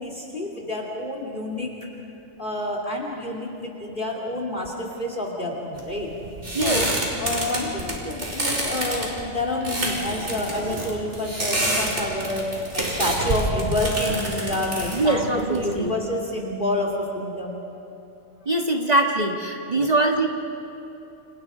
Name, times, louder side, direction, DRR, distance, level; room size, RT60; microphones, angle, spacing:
voice 1, 0.0-1.7 2.4-6.1 6.5-6.9 7.2-12.5 12.7-17.6 19.7-19.9, left 1 dB, 40° left, 0 dB, 2.8 m, -28 dB
sound 1, 5.8-16.1, right 1 dB, 65° right, 4.7 m, -28 dB
voice 2, 6.5-6.8 14.9-15.9 18.4-20.3, right 2 dB, 35° right, 0 dB, 1.7 m, -22 dB
29.5 x 28.5 x 5.0 m, 3.0 s
omnidirectional pair, 1.3 m